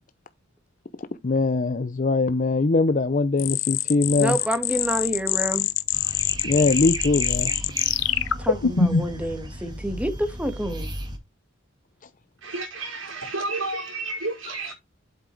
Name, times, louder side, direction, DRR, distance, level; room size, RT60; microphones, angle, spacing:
voice 1, 1.2-4.4 6.4-7.5, left 3 dB, 40° left, 0.6 m, -22 dB
sound 1, 3.4-9.2, left 8 dB, 90° left, 0.9 m, -24 dB
voice 2, 4.2-5.7 8.4-10.9, equal, 5° right, 1.6 m, -28 dB
sound 2, 5.9-11.2, right 1 dB, 25° right, 2.4 m, -35 dB
voice 3, 12.4-14.7, right 2 dB, 90° right, 5.0 m, -31 dB
8.3 x 6.1 x 4.5 m
head